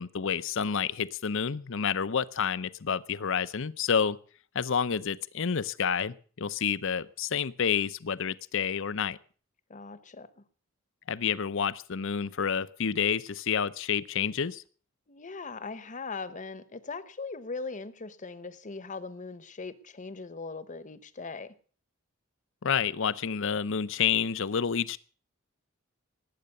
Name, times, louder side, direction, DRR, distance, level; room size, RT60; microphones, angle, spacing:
voice 1, 0.0-4.2 4.5-9.2 11.1-14.6 22.6-25.0, left 7 dB, 65° left, 17 dB, 0.7 m, -29 dB
voice 2, 9.7-10.3 15.1-21.5, left 4 dB, 40° left, 15 dB, 1.0 m, -40 dB
19.0 x 8.7 x 6.6 m, 0.43 s
head